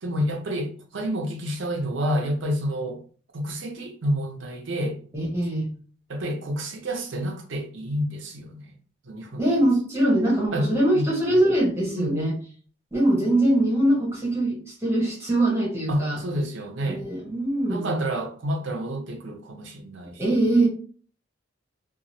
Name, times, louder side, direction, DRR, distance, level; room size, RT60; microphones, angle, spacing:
voice 1, 0.0-3.0 3.3-5.0 6.1-8.7 9.0-9.5 10.5-10.7 10.9-11.1 11.9-12.3 15.9-17.0 17.7-20.2, equal, 70° right, 0.7 m, -29 dB
voice 2, 5.1-5.7 9.4-12.3 12.9-16.2 16.9-18.0 20.2-20.7, right 1 dB, 15° right, 1.0 m, -22 dB
2.8 x 2.4 x 2.6 m
head